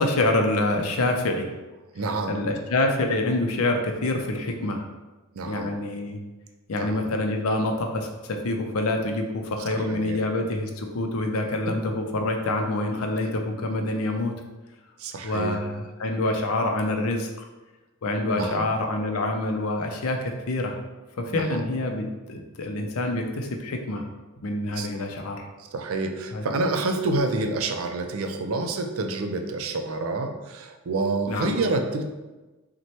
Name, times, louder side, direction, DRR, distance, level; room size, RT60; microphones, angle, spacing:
voice 1, 0.0-1.5 2.3-4.9 5.5-6.2 6.7-14.3 15.2-17.3 18.0-20.8 21.2-24.0 24.4-25.5 26.3-26.4 31.3-31.5, left 2 dB, 70° left, 4 dB, 0.5 m, -26 dB
voice 2, 1.9-2.4 5.4-5.7 6.7-7.1 9.7-10.2 15.0-15.6 18.4-18.6 21.3-21.6 24.8-25.0 25.7-32.1, right 2 dB, 65° right, 5 dB, 0.4 m, -28 dB
6.0 x 2.2 x 2.9 m, 1.2 s
head